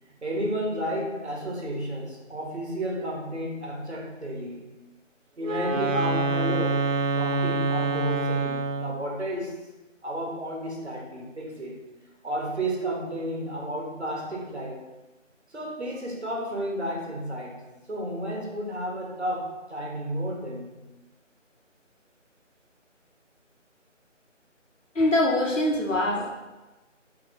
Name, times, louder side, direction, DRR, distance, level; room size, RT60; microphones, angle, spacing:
voice 1, 0.2-4.6 5.4-6.9 7.1-9.6 10.0-11.8 12.2-14.8 15.5-17.6 17.9-20.7, right 1 dB, 60° right, -1 dB, 1.3 m, -32 dB
Wind instrument woodwind instrument, 5.4-9.1, right 3 dB, 85° right, 0.5 m, -26 dB
voice 2, 24.9-26.3, left 1 dB, 80° left, -1 dB, 1.1 m, -23 dB
3.9 x 3.2 x 4.0 m, 1.1 s
figure-of-eight pair, 160°, 38 cm